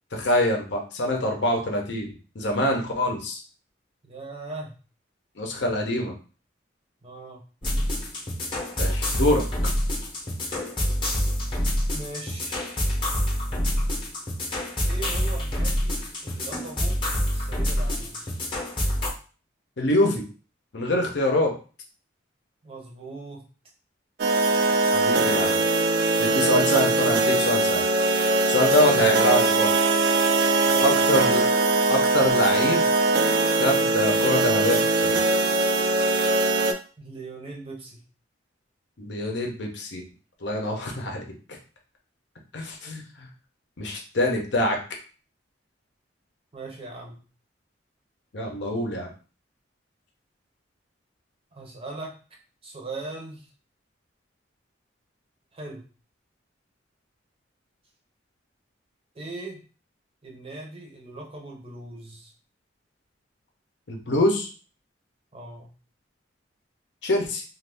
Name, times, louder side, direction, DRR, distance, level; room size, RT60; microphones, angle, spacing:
voice 1, 0.1-2.1 2.3-3.4 5.4-6.1 8.8-9.4 19.8-20.2 20.7-21.5 24.9-25.6 26.2-27.8 28.5-29.7 30.8-31.4 31.9-32.8 33.5-35.2 39.0-40.0 40.4-41.2 42.5-43.0 43.8-44.8 48.3-49.1 63.9-64.5 67.0-67.4, left 1 dB, 65° left, 1 dB, 0.7 m, -24 dB
voice 2, 4.0-4.7 7.0-7.4 11.9-13.0 14.8-17.0 17.3-18.3 22.6-23.4 28.8-29.3 30.7-31.0 37.0-38.0 46.5-47.2 51.5-52.1 52.6-53.5 55.5-55.8 59.1-59.6 60.2-62.3 65.3-65.7, right 3 dB, 30° right, 0 dB, 0.7 m, -39 dB
sound 1, 7.6-19.1, equal, 25° left, 0.8 m, -27 dB
sound 2, 24.2-36.7, right 2 dB, 50° right, 0.3 m, -21 dB
2.5 x 2.4 x 3.4 m, 0.37 s
head